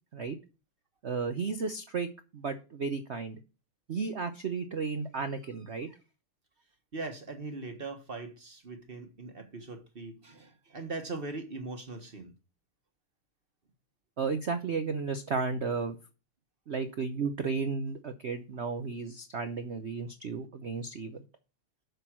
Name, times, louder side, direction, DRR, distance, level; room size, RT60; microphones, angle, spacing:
voice 1, 1.0-2.1 2.3-3.4 3.9-5.9 14.2-16.0 16.7-21.2, right 5 dB, 90° right, 0.6 m, -33 dB
voice 2, 6.9-12.3, right 3 dB, 35° right, 1.2 m, -40 dB
8.2 x 6.2 x 6.1 m
omnidirectional pair, 2.3 m